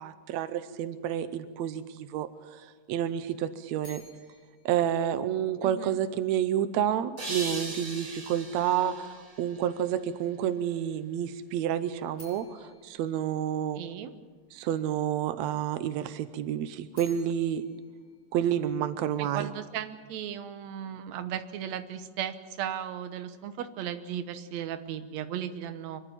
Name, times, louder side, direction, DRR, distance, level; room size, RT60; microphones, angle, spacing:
voice 1, 0.0-4.0 4.6-13.8 14.5-17.6 18.3-19.5, right 10 dB, 85° right, 11 dB, 1.6 m, -29 dB
sound 1, 3.8-5.9 12.1-14.3 16.7-19.1, left 2 dB, 30° left, 7.1 m, -55 dB
voice 2, 5.6-6.0 13.7-14.1 19.2-26.0, right 9 dB, 65° right, 9 dB, 1.9 m, -36 dB
sound 2, 7.2-10.3, right 2 dB, 20° right, 4.5 m, -39 dB
25.5 x 12.0 x 9.0 m, 1.5 s
omnidirectional pair, 4.1 m